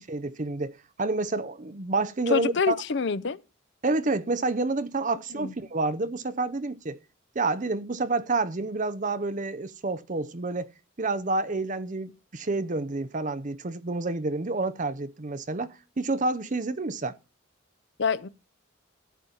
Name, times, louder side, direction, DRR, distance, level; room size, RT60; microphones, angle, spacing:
voice 1, 0.0-2.8 3.8-7.0 7.3-10.7 11.0-17.2, right 3 dB, 40° right, 0.7 m, -29 dB
voice 2, 2.3-3.4 5.3-5.5 18.0-18.3, left 5 dB, 55° left, 0.6 m, -26 dB
13.5 x 8.6 x 3.9 m
head